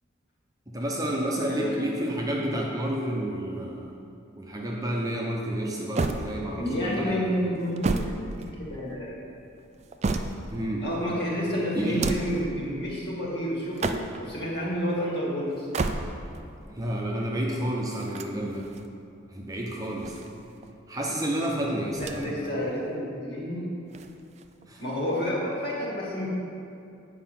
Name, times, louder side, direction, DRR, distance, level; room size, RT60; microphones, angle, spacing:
voice 1, 0.7-3.9 4.4-7.5 10.5-10.8 11.7-12.0 16.7-18.7 19.3-20.3 20.9-22.3 24.7-24.8, right 1 dB, 15° right, -3 dB, 0.8 m, -30 dB
voice 2, 1.4-1.7 6.5-8.2 8.6-9.2 10.8-15.7 22.0-23.6 24.8-26.3, equal, 55° left, -5 dB, 2.1 m, -30 dB
sound 1, 6.0-6.8 7.6-8.9 9.6-10.7 11.8-12.5 13.6-14.4 15.5-16.4 17.9-18.9 19.8-20.7 21.9-22.5 22.8-22.9 23.9-24.7, right 3 dB, 35° right, 0.4 m, -32 dB
8.9 x 5.0 x 5.9 m, 2.6 s
head